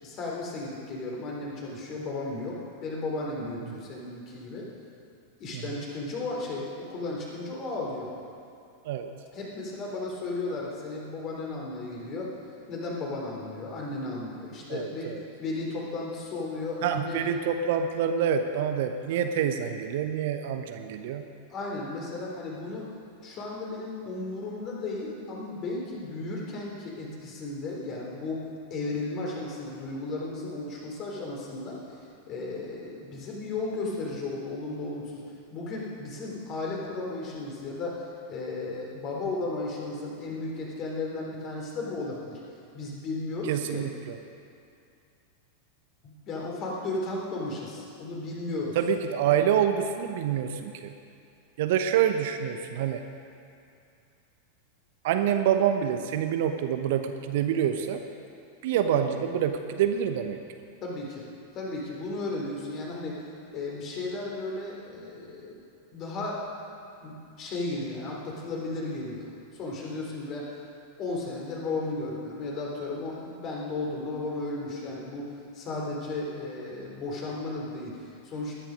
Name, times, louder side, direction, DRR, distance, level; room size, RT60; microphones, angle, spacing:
voice 1, 0.0-4.7 5.4-8.1 9.3-12.3 12.7-17.2 21.5-22.9 23.2-28.4 28.7-32.0 32.3-35.2 35.5-38.0 38.3-42.4 42.7-43.9 46.0-48.8 60.8-61.3 61.5-63.2 63.5-65.6 65.9-66.4 67.0-70.5 71.0-75.3 75.5-78.5, left 2 dB, 35° left, -2 dB, 3.8 m, -34 dB
voice 2, 14.7-15.2 16.8-21.2 43.5-44.2 48.8-50.9 51.6-53.0 55.0-58.0 58.6-60.4, right 8 dB, 55° right, 7 dB, 0.9 m, -27 dB
19.5 x 10.0 x 5.2 m, 2.5 s
figure-of-eight pair, 90°, 0 cm